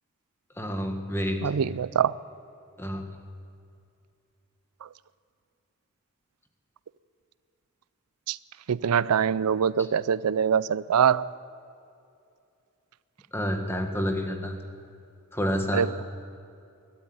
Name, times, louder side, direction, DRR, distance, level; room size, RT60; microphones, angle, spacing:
voice 1, 0.6-1.4 2.8-3.0 13.3-14.6 15.3-15.9, equal, 10° left, 4 dB, 1.6 m, -28 dB
voice 2, 1.4-2.1 8.3-8.4 8.7-11.3 15.7-16.0, right 7 dB, 90° right, 19 dB, 0.4 m, -24 dB
21.0 x 13.5 x 9.4 m, 2.5 s
head